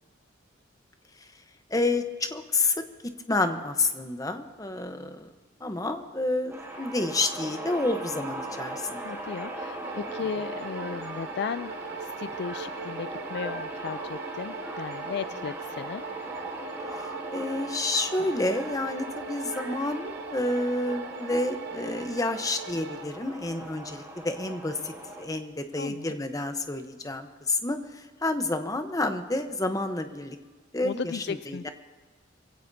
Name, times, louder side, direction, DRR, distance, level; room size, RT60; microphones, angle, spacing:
voice 1, 1.7-2.8 3.3-5.3 5.6-9.0 17.3-27.8 28.2-30.4 30.7-31.7, left 2 dB, 20° left, 7 dB, 0.9 m, -29 dB
sound 1, 6.5-25.2, right 1 dB, 15° right, 2.3 m, -39 dB
voice 2, 9.0-16.0 25.7-26.2 30.8-31.7, left 6 dB, 55° left, 14 dB, 0.3 m, -36 dB
sound 2, 9.8-23.0, right 5 dB, 55° right, 0.4 m, -41 dB
22.5 x 16.0 x 2.7 m, 1.4 s
head